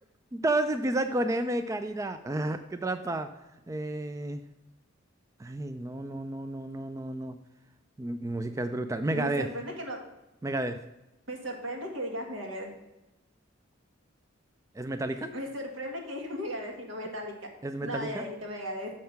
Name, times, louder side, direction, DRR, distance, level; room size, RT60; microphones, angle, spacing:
voice 1, 0.3-3.3 3.7-4.4 5.4-7.4 8.0-9.5 10.4-10.8 14.7-15.3 17.6-18.2, right 1 dB, 15° right, 9 dB, 0.3 m, -31 dB
voice 2, 9.1-10.0 11.3-12.7 15.3-17.3 17.8-18.9, equal, 80° right, 1 dB, 1.8 m, -36 dB
6.5 x 5.5 x 5.8 m, 0.96 s
head